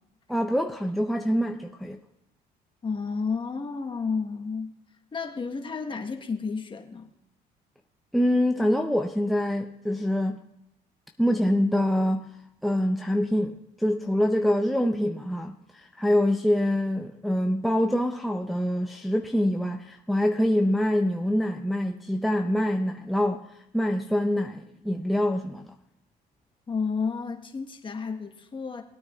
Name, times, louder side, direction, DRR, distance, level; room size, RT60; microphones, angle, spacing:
voice 1, 0.3-2.0 8.1-10.4 11.2-12.3 12.6-23.4 23.7-25.7, equal, ahead, 0.5 m, -25 dB
voice 2, 2.8-4.7 5.1-7.1 26.7-28.8, left 5 dB, 30° left, 1.2 m, -31 dB
20.0 x 9.1 x 2.4 m
cardioid pair, 110°, 17 cm